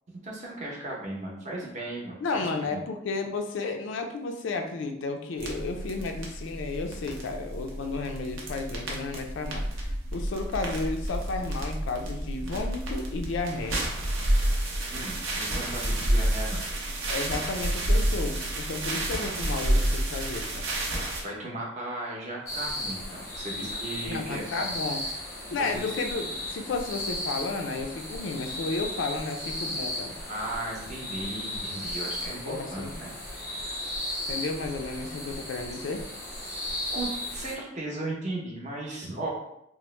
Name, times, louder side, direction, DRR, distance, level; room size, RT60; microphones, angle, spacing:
voice 1, 0.2-2.8 14.9-16.6 21.2-25.0 25.5-25.9 30.2-33.8 36.9-39.3, right 1 dB, 35° right, -3 dB, 0.7 m, -36 dB
voice 2, 2.2-13.8 17.1-20.7 23.6-23.7 24.1-25.0 25.5-30.2 32.3-32.9 34.3-36.1, left 3 dB, 70° left, 5 dB, 0.4 m, -33 dB
sound 1, 5.4-21.2, right 1 dB, 80° right, 0.7 m, -29 dB
sound 2, 22.5-37.5, left 1 dB, 15° left, 0.6 m, -35 dB
3.0 x 2.0 x 3.1 m, 0.78 s
head